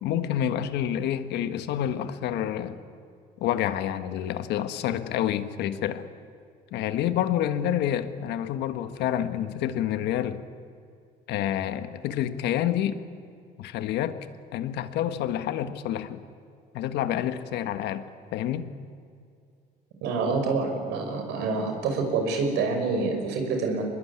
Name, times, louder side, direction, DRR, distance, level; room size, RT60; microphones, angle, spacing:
voice 1, 0.0-2.8 3.4-6.0 6.7-10.4 11.3-13.0 13.6-14.2 14.5-16.2 16.7-18.1 18.3-18.7, left 11 dB, 80° left, 10 dB, 1.6 m, -28 dB
voice 2, 20.0-23.8, right 4 dB, 90° right, 4 dB, 5.6 m, -27 dB
25.5 x 20.5 x 9.8 m, 2.4 s
cardioid pair, 110°, 17 cm